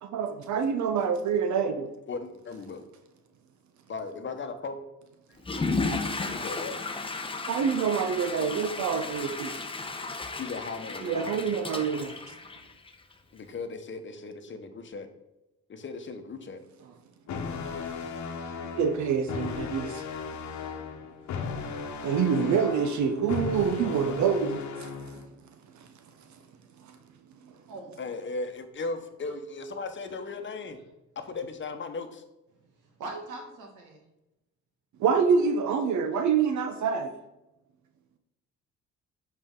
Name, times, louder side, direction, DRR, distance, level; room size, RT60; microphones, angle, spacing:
voice 1, 0.0-1.9 7.5-9.5 11.0-12.1 18.6-20.0 22.0-25.2 35.0-37.1, right 6 dB, 70° right, 7 dB, 0.7 m, -26 dB
voice 2, 2.1-2.8 3.9-4.8 6.3-6.8 10.4-11.4 13.3-15.1 15.7-16.6 28.0-30.8 31.2-32.2, left 3 dB, 40° left, 7 dB, 0.9 m, -37 dB
Water / Toilet flush, 5.4-13.1, left 3 dB, 20° left, 0.7 m, -34 dB
sound 1, 17.3-25.3, left 5 dB, 70° left, 1.0 m, -36 dB
voice 3, 32.5-34.0, right 2 dB, 90° right, 1 dB, 1.8 m, -41 dB
7.8 x 4.5 x 3.7 m, 0.96 s
cardioid pair, 90°, 30 cm